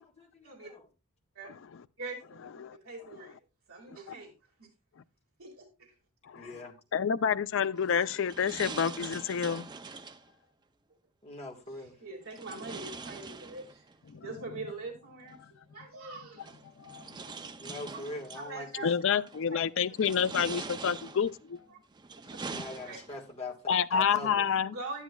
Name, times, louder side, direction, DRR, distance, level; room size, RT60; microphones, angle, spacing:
voice 1, 0.2-0.8 6.3-6.7 11.2-11.9 17.6-18.7 22.5-24.4, left 2 dB, 30° left, 1.5 m, -42 dB
voice 2, 2.0-2.4 2.7-3.4 3.7-4.3 4.6-4.7 5.4-5.7 11.7-15.4 15.7-17.0 17.9-18.1 18.3-19.2 19.5-19.6 20.0-20.1 22.9-23.0 24.7-25.0, right 3 dB, 70° right, 2.0 m, -43 dB
voice 3, 6.3-9.7 14.1-14.3 16.8-17.0 18.8-21.6 22.5-22.6 23.7-24.8, left 7 dB, 55° left, 0.4 m, -29 dB
sound 1, 7.7-10.3 12.3-14.0 15.3-15.4 16.4-18.5 19.1-19.5 19.9-21.4 21.9-23.3, right 4 dB, 20° right, 0.4 m, -43 dB
11.0 x 9.9 x 2.3 m
head